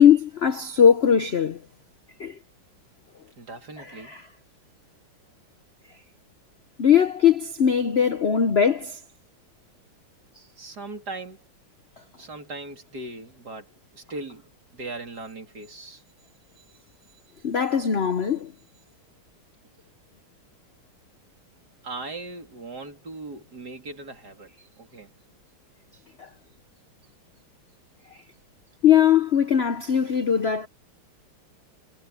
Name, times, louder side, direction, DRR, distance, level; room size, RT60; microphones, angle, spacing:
voice 1, 0.0-1.6 2.2-2.4 3.8-4.2 6.8-9.0 17.4-18.5 26.2-26.3 28.8-30.7, left 8 dB, 75° left, 0.6 m, -20 dB
voice 2, 3.4-4.2 10.6-11.4 12.2-16.0 21.8-24.5 24.8-25.1, right 3 dB, 50° right, 3.6 m, -39 dB
omnidirectional pair, 2.3 m